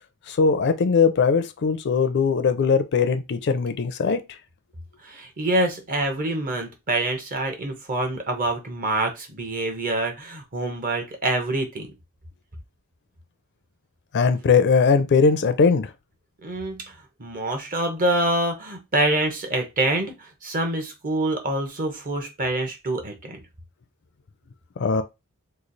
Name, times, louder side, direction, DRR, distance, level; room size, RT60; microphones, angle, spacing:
voice 1, 0.3-4.4 14.1-15.9 24.8-25.0, left 5 dB, 50° left, 0.4 m, -20 dB
voice 2, 5.0-11.9 16.4-16.8 17.2-23.4, right 1 dB, 40° right, 0.9 m, -26 dB
3.1 x 2.3 x 3.9 m
head